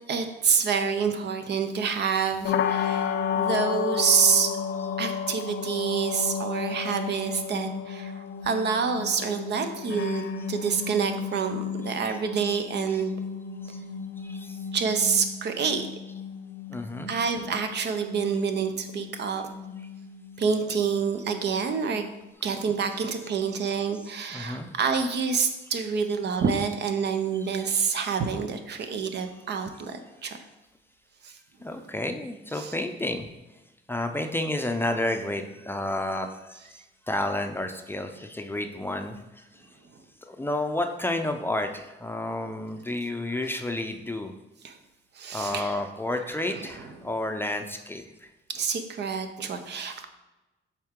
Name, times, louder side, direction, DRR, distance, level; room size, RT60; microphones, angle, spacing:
voice 1, 0.1-4.6 5.0-10.2 10.5-13.1 14.7-15.9 17.1-19.5 20.4-22.1 22.4-30.4 31.2-31.3 31.7-31.8 32.5-32.8 44.6-44.8 45.2-45.8 46.5-46.7 48.5-50.0, right 6 dB, 60° right, 7 dB, 0.7 m, -27 dB
sound 1, 2.4-22.3, left 7 dB, 65° left, 0.4 m, -33 dB
voice 2, 14.2-14.6 16.7-17.1 22.9-23.1 24.3-24.7 26.4-26.7 27.4-27.9 28.8-28.9 31.6-33.3 33.9-36.3 37.1-39.2 40.3-44.3 45.3-48.0, left 1 dB, 10° left, 5 dB, 0.5 m, -31 dB
7.5 x 3.7 x 3.7 m, 1.0 s
cardioid pair, 90°, 20 cm